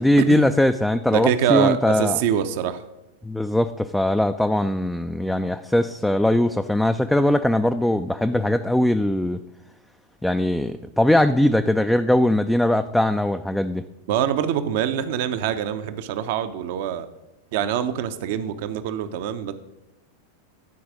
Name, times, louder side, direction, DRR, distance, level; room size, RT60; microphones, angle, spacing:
voice 1, 0.0-2.2 3.2-9.4 10.2-13.8, left 1 dB, 5° left, 8 dB, 0.3 m, -20 dB
voice 2, 1.1-2.8 14.1-17.1 17.5-19.5, right 9 dB, 50° right, 10 dB, 0.6 m, -24 dB
12.0 x 4.7 x 6.2 m, 0.95 s
figure-of-eight pair, 90°, 0 cm